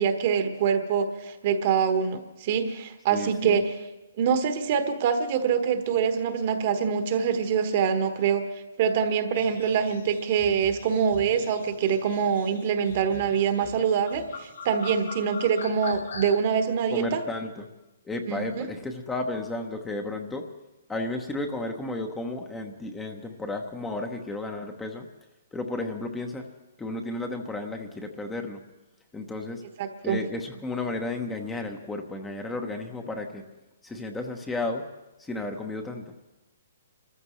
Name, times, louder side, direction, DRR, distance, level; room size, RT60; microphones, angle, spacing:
voice 1, 0.0-3.7 4.2-8.4 8.8-17.2 18.3-18.7 29.8-30.2, right 7 dB, 45° right, 8 dB, 1.3 m, -25 dB
voice 2, 3.1-3.6 16.9-17.7 18.0-20.4 20.9-25.0 25.5-26.4 26.8-28.6 29.1-29.6 30.0-33.4 33.8-34.8 35.2-36.0, left 2 dB, 10° left, 4 dB, 1.0 m, -33 dB
sound 1, 9.3-16.3, left 4 dB, 85° left, 3.4 m, -42 dB
29.5 x 14.0 x 3.2 m, 0.97 s
hypercardioid pair, 150°, 0 cm